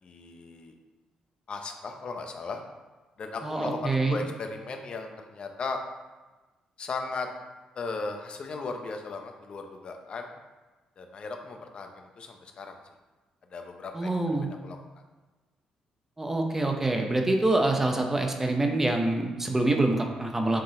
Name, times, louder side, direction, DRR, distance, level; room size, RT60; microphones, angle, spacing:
voice 1, 0.0-0.7 1.5-2.6 3.2-5.8 6.8-7.3 7.7-10.3 11.0-12.8 13.5-14.8, left 4 dB, 50° left, 4 dB, 0.8 m, -37 dB
voice 2, 3.4-4.2 13.9-14.5 16.2-20.6, right 2 dB, 15° right, 3 dB, 0.7 m, -26 dB
6.7 x 3.8 x 3.8 m, 1.2 s
cardioid pair, 100°, 2 cm